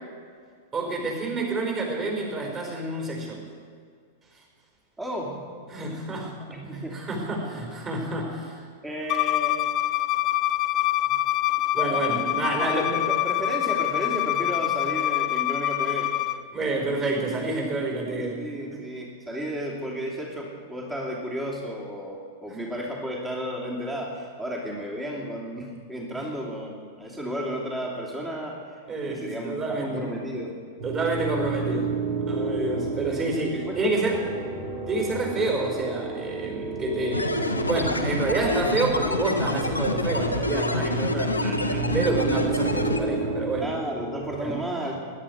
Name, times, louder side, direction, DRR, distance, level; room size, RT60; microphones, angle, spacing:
voice 1, 0.7-3.4 5.7-8.6 11.7-12.9 16.5-18.4 18.7-18.8 26.2-26.3 28.9-30.0 30.8-31.9 32.3-33.5 33.7-34.2 34.9-37.4 37.6-43.7 44.4-44.6, right 3 dB, 25° right, 0 dB, 5.0 m, -28 dB
voice 2, 5.0-5.4 6.5-7.1 8.8-9.6 11.1-11.2 12.5-16.1 18.1-30.6 33.1-34.3 34.8-34.9 43.6-45.0, equal, 10° right, -3 dB, 2.6 m, -33 dB
Bowed string instrument, 9.1-16.4, left 15 dB, 35° left, 0.5 m, -25 dB
sound 1, 30.8-44.4, right 3 dB, 50° right, 3.8 m, -32 dB
sound 2, 37.1-43.0, left 2 dB, 85° left, 1.1 m, -27 dB
21.5 x 11.0 x 4.8 m, 2.1 s
figure-of-eight pair, 95°, 0 cm